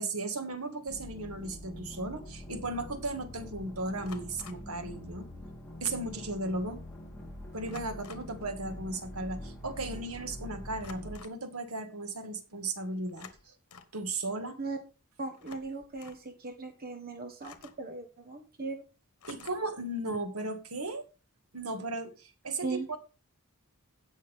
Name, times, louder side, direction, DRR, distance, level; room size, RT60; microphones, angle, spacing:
voice 1, 0.0-5.3 5.8-6.8 7.5-13.5 13.9-14.6 19.3-21.1 21.5-23.0, right 2 dB, 70° right, 2.0 m, -36 dB
sound 1, 0.9-11.2, left 1 dB, 10° left, 3.7 m, -45 dB
sound 2, 2.0-2.1 4.0-4.7 6.1-6.2 6.5-6.7 7.7-8.4 10.8-11.4 13.1-14.0 15.3-16.3 17.4-17.9 19.2-19.8, left 5 dB, 85° left, 1.3 m, -51 dB
voice 2, 15.2-18.8 22.6-23.0, right 3 dB, 45° right, 1.4 m, -38 dB
16.5 x 6.4 x 3.6 m
head